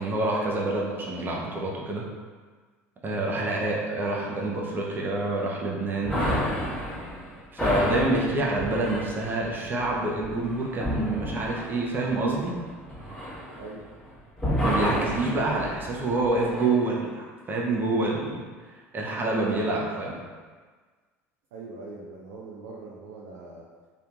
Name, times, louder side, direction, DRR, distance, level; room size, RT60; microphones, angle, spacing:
voice 1, 0.0-2.0 3.0-6.2 7.5-12.5 14.6-18.4 18.9-20.2, right 2 dB, 25° right, -3 dB, 0.7 m, -27 dB
sound 1, 6.0-14.1 14.4-16.7, equal, 10° left, 1.3 m, -31 dB
voice 2, 21.5-23.9, right 3 dB, 65° right, -5 dB, 0.5 m, -42 dB
3.3 x 2.8 x 2.5 m, 1.5 s
figure-of-eight pair, 65°, 8 cm